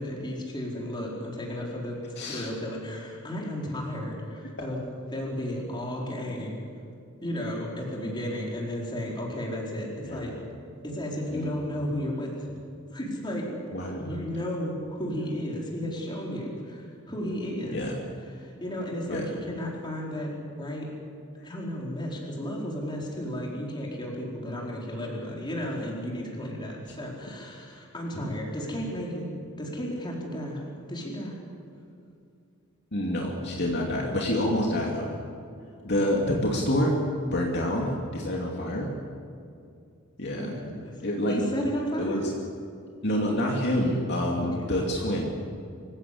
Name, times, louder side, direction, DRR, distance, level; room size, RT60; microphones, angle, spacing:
voice 1, 0.0-2.0 2.2-6.6 7.2-10.3 10.8-12.3 12.9-13.5 14.0-17.8 18.4-20.9 21.4-29.3 29.6-30.6 30.9-31.4 40.4-40.7 41.2-42.2 44.3-44.5, equal, 20° left, -2 dB, 4.8 m, -33 dB
voice 2, 2.2-2.5 10.0-10.3 11.3-11.6 13.7-14.1 17.6-18.0 19.1-19.3 21.3-21.5 32.9-35.2 35.8-38.9 40.2-40.5 41.0-41.4 42.0-42.3 43.0-45.3, left 1 dB, 50° left, -1 dB, 2.7 m, -27 dB
25.5 x 16.0 x 8.6 m, 2.5 s
head